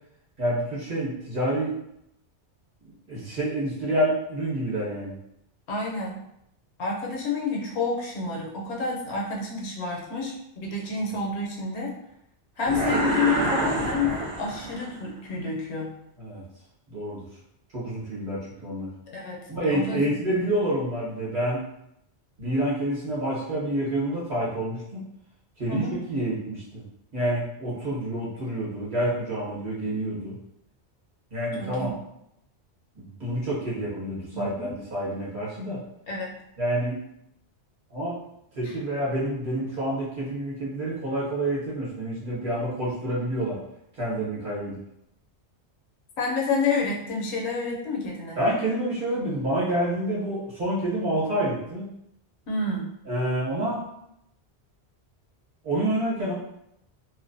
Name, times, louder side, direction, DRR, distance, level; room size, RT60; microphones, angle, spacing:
voice 1, 0.4-1.7 2.8-5.2 16.2-16.4 16.9-17.3 17.7-18.9 19.5-21.6 22.4-25.0 25.6-26.8 27.1-30.4 31.3-31.9 33.0-35.8 36.6-37.0 37.9-38.2 38.5-43.6 43.9-44.8 48.4-51.8 53.1-53.8 55.6-56.3, right 1 dB, 45° right, -8 dB, 1.1 m, -28 dB
voice 2, 5.7-6.2 6.8-11.9 12.6-15.9 19.1-20.1 25.7-26.0 31.6-31.9 34.3-34.7 36.1-36.3 38.6-38.7 46.2-48.4 52.5-52.9, left 4 dB, 75° left, -2 dB, 0.9 m, -29 dB
sound 1, 12.6-15.0, right 2 dB, 85° right, 0.9 m, -27 dB
2.5 x 2.1 x 2.5 m, 0.79 s
omnidirectional pair, 1.2 m